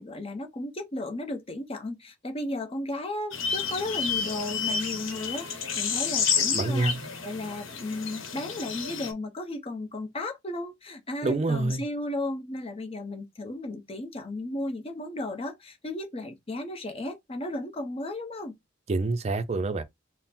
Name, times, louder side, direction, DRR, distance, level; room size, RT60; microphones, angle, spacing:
voice 1, 0.0-6.9 7.2-18.6, left 2 dB, 30° left, 0.7 m, -34 dB
sound 1, 3.3-9.1, left 6 dB, 80° left, 0.9 m, -30 dB
voice 2, 6.5-7.1 11.2-11.8 18.9-19.8, right 3 dB, 35° right, 0.5 m, -27 dB
3.8 x 2.0 x 4.2 m
head